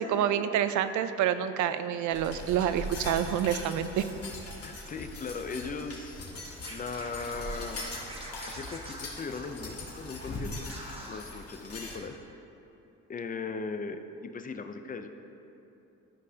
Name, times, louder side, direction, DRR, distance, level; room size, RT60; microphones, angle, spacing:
voice 1, 0.0-4.1, right 9 dB, 75° right, 11 dB, 0.5 m, -28 dB
sound 1, 2.1-12.0, left 1 dB, 50° left, 1.8 m, -41 dB
voice 2, 4.6-6.3 6.7-7.9 8.5-10.5 11.1-12.4 13.1-15.1, left 4 dB, 30° left, 8 dB, 0.5 m, -38 dB
Scratching (performance technique), 6.6-10.0 10.2-10.4 10.7-11.2, right 1 dB, 20° right, 1.0 m, -45 dB
13.5 x 5.3 x 2.8 m, 2.8 s
cardioid pair, 90°, 30 cm